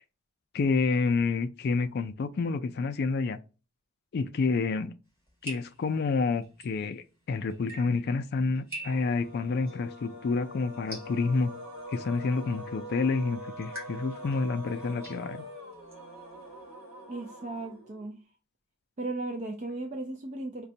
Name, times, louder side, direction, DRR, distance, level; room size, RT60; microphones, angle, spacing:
voice 1, 0.5-3.4 4.1-4.9 5.4-11.5 11.9-15.4, left 4 dB, 50° left, 0.3 m, -29 dB
sound 1, 5.1-16.7, right 1 dB, 10° right, 1.5 m, -48 dB
sound 2, 8.8-18.2, equal, 75° right, 1.2 m, -44 dB
voice 2, 17.1-18.2 19.0-20.7, right 2 dB, 35° right, 0.4 m, -36 dB
5.0 x 2.2 x 2.6 m
head